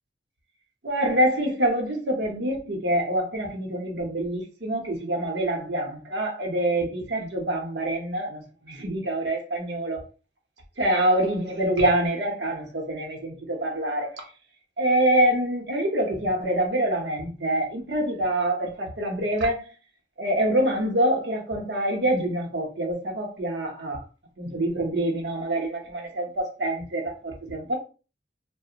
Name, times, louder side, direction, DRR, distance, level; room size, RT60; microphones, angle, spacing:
voice 1, 0.8-10.0 10.8-14.2 14.8-19.6 20.2-24.0 24.4-27.8, right 1 dB, 75° right, 0.8 m, -26 dB
2.4 x 2.0 x 2.8 m
head